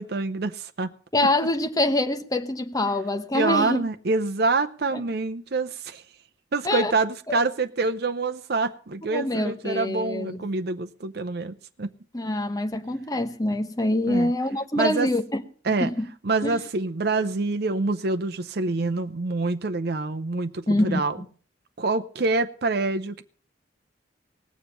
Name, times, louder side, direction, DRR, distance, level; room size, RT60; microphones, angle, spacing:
voice 1, 0.0-0.9 3.3-6.0 6.5-11.9 14.1-14.3 14.7-15.1 15.6-15.9 16.2-21.2 21.8-23.2, right 3 dB, 55° right, 0.7 m, -26 dB
voice 2, 1.1-3.8 6.6-6.9 7.3-7.4 9.1-10.4 12.1-15.4 15.8-16.1 16.4-16.6 20.7-21.0, left 1 dB, 20° left, 1.0 m, -25 dB
18.5 x 7.3 x 6.9 m
head